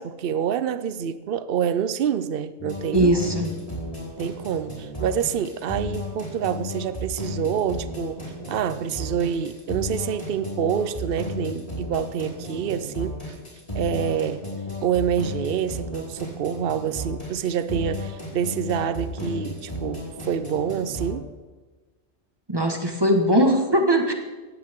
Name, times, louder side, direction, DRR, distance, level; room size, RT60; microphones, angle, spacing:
voice 1, 0.0-3.2 4.2-8.2 8.5-13.4 13.7-14.4 14.8-21.3, right 8 dB, 60° right, 13 dB, 0.8 m, -27 dB
sound 1, 2.6-21.1, left 1 dB, 30° left, 5.2 m, -33 dB
voice 2, 2.9-3.5 22.5-24.1, equal, 20° right, 3 dB, 1.8 m, -20 dB
17.5 x 15.5 x 3.7 m, 1.3 s
omnidirectional pair, 1.2 m